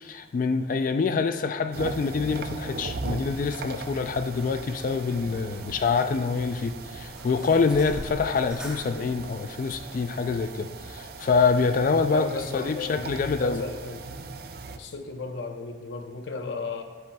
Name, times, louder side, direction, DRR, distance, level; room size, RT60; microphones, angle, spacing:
voice 1, 0.0-13.6, left 4 dB, 45° left, 9 dB, 0.3 m, -26 dB
sound 1, 1.7-14.8, right 3 dB, 55° right, 0.5 m, -39 dB
sound 2, 2.3-10.0, equal, 5° right, 1.0 m, -46 dB
voice 2, 12.0-14.1 14.8-16.8, left 3 dB, 75° left, 6 dB, 0.7 m, -35 dB
10.5 x 7.9 x 2.3 m, 1.4 s
head